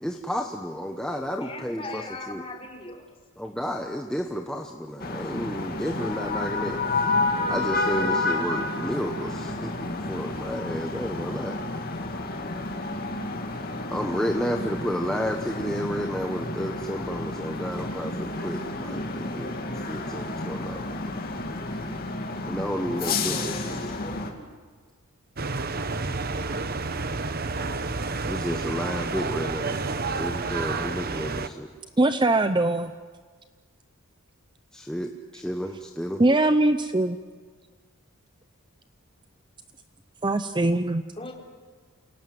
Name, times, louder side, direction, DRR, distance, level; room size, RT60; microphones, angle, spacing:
voice 1, 0.0-2.4 3.4-6.8 7.5-11.6 13.9-21.0 22.5-23.5 28.3-29.8 30.1-31.7 34.7-36.2, equal, 5° left, 2 dB, 1.1 m, -31 dB
voice 2, 1.4-3.1 23.0-24.5 41.2-41.3, left 2 dB, 25° left, 1 dB, 3.7 m, -39 dB
sound 1, 5.0-24.3, left 2 dB, 40° left, 2.4 m, -30 dB
sound 2, 25.4-31.5, right 3 dB, 45° right, 1.0 m, -30 dB
voice 3, 32.0-32.9 36.2-37.2 40.2-41.0, right 2 dB, 20° right, 10 dB, 0.7 m, -21 dB
28.5 x 18.5 x 9.4 m, 1.5 s
head